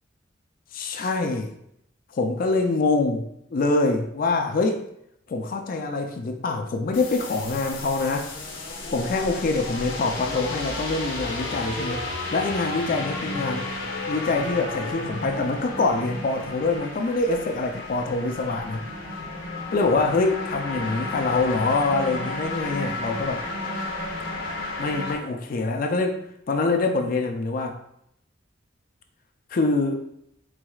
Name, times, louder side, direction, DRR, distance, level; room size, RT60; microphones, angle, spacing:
voice 1, 0.7-1.5 2.1-4.8 5.3-8.3 8.9-12.0 12.3-13.7 14.1-18.8 19.7-23.4 24.8-27.8 29.5-30.1, left 3 dB, 45° left, 4 dB, 0.4 m, -25 dB
sound 1, 6.9-25.1, left 2 dB, 90° left, 0.9 m, -33 dB
4.7 x 4.0 x 2.3 m, 0.75 s
head